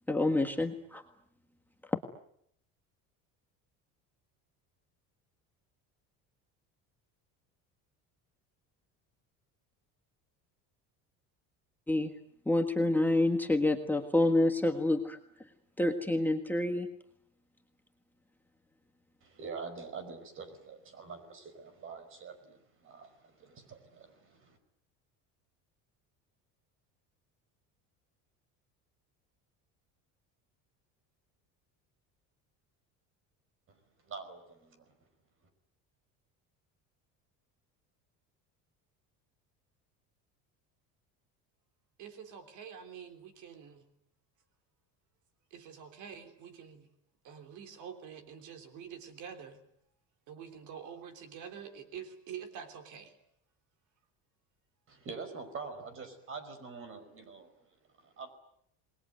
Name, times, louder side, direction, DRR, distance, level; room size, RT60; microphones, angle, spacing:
voice 1, 0.1-1.0 1.9-2.0 11.9-12.1 12.4-15.2 15.8-16.9, left 2 dB, 5° left, 3 dB, 1.6 m, -27 dB
voice 2, 19.2-24.6 33.7-34.9 54.9-58.3, right 5 dB, 35° right, 12 dB, 5.3 m, -46 dB
voice 3, 42.0-43.8 45.5-46.9 47.2-49.6 50.3-53.1, right 7 dB, 60° right, 8 dB, 3.5 m, -47 dB
28.0 x 21.0 x 9.3 m, 0.71 s
cardioid pair, 155°, 34 cm